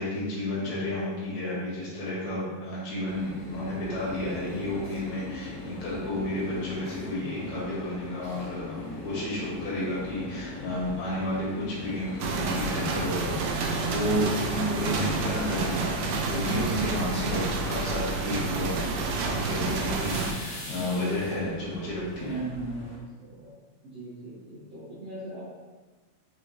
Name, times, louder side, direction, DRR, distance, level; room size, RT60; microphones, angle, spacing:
voice 1, 0.0-18.8 19.2-22.4, left 1 dB, 85° left, -7 dB, 1.2 m, -31 dB
sound 1, 3.0-23.0, left 2 dB, 65° left, 0.9 m, -41 dB
sound 2, 12.2-20.3, right 3 dB, 80° right, 2.2 m, -29 dB
voice 2, 22.2-22.9 23.2-23.5 23.9-25.5, right 2 dB, 60° right, -12 dB, 1.6 m, -38 dB
5.9 x 3.3 x 2.7 m, 1.3 s
omnidirectional pair, 4.5 m